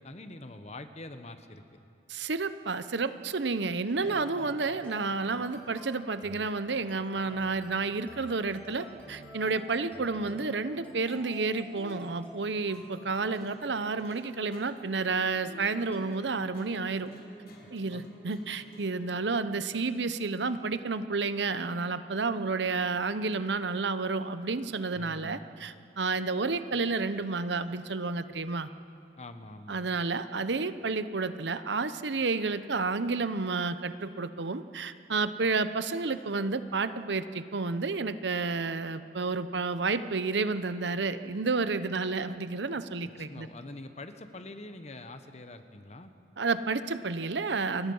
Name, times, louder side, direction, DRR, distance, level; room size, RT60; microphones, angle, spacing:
voice 1, 0.0-1.8 17.9-18.0 24.9-25.5 29.2-29.9 43.2-46.1, left 2 dB, 35° left, 9 dB, 1.1 m, -45 dB
voice 2, 2.1-17.1 17.7-28.7 29.7-43.5 46.4-47.9, right 4 dB, 80° right, 12 dB, 0.9 m, -31 dB
sound 1, 4.0-16.1, equal, 10° left, 4.6 m, -50 dB
sound 2, 11.1-19.1, equal, 60° left, 4.7 m, -51 dB
29.5 x 22.0 x 5.6 m, 2.5 s
head